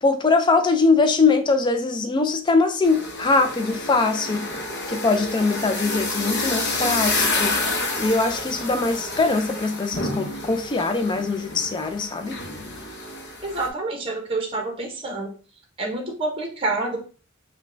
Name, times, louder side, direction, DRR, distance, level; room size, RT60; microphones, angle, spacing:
voice 1, 0.0-4.5 4.9-7.6 8.0-12.4, left 3 dB, 20° left, 7 dB, 0.3 m, -22 dB
sound 1, 2.8-13.7, left 2 dB, 55° left, 0.7 m, -29 dB
voice 2, 13.4-15.3 15.8-17.0, right 2 dB, 25° right, 1 dB, 0.7 m, -27 dB
5.1 x 2.2 x 2.5 m, 0.38 s
head